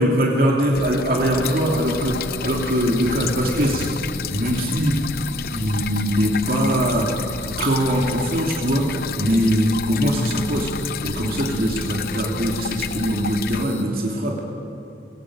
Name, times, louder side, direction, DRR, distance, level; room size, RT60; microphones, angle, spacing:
voice 1, 0.0-5.1 5.5-7.2 7.6-8.8 9.2-10.7 11.0-14.3, equal, 50° right, -1 dB, 2.9 m, -22 dB
sound 1, 0.7-13.7, left 6 dB, 50° left, 0.5 m, -31 dB
sound 2, 1.4-13.8, left 3 dB, 85° left, 1.9 m, -37 dB
24.0 x 16.5 x 8.8 m, 2.6 s
head